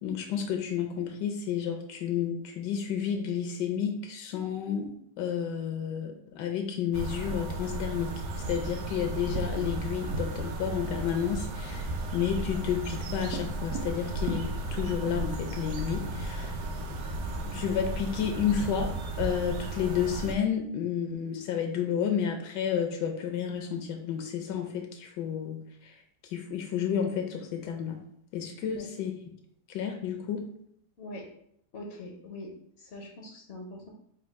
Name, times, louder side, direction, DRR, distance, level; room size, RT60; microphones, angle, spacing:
voice 1, 0.0-8.1 8.5-16.6 17.4-28.0 28.3-29.1 29.7-30.4, left 8 dB, 80° left, 3 dB, 1.2 m, -31 dB
sound 1, 6.9-20.4, right 2 dB, 70° right, 1.0 m, -34 dB
voice 2, 28.6-29.1 31.0-31.2 31.7-32.5 32.8-33.9, left 1 dB, 60° left, 0 dB, 0.6 m, -43 dB
4.3 x 2.3 x 4.5 m, 0.70 s
omnidirectional pair, 1.8 m